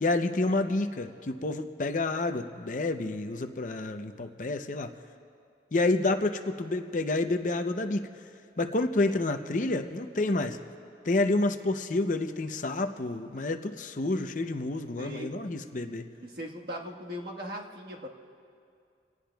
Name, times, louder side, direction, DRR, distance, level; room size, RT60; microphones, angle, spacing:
voice 1, 0.0-4.9 5.7-8.1 8.6-10.6 11.0-16.1, left 2 dB, 45° left, 7 dB, 0.6 m, -29 dB
voice 2, 15.0-15.3 16.2-18.1, equal, 60° right, -1 dB, 1.5 m, -39 dB
26.5 x 18.0 x 2.3 m, 2.4 s
head